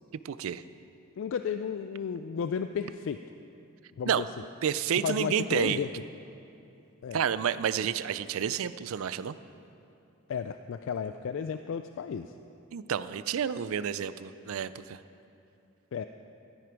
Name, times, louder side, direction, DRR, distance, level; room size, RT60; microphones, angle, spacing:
voice 1, 0.2-0.6 4.1-4.2 4.6-5.8 7.1-9.3 12.7-15.0, right 8 dB, 70° right, 15 dB, 0.4 m, -30 dB
voice 2, 1.2-3.2 4.0-4.3 5.0-5.9 7.0-7.2 10.3-12.3 15.9-16.1, left 7 dB, 60° left, 9 dB, 0.3 m, -33 dB
13.0 x 10.0 x 4.6 m, 2.7 s
head